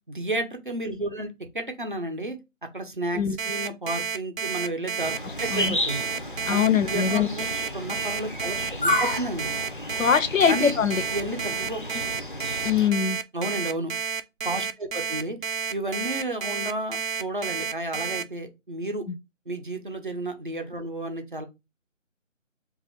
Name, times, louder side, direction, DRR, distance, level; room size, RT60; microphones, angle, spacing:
voice 1, 0.1-2.4 2.7-6.1 6.5-9.5 10.5-10.8 11.1-12.0 13.3-13.9 14.4-15.4 15.7-19.0 19.5-21.4, right 1 dB, 40° right, 0.6 m, -32 dB
Alarm, 3.4-18.2, right 6 dB, 85° right, 0.6 m, -30 dB
sound 1, 5.0-12.9, left 1 dB, 45° left, 0.4 m, -32 dB
voice 2, 6.5-7.3 10.0-11.0 12.6-13.2 19.1-19.2, left 7 dB, 80° left, 0.7 m, -22 dB
3.2 x 2.4 x 4.2 m
figure-of-eight pair, 175°, 39 cm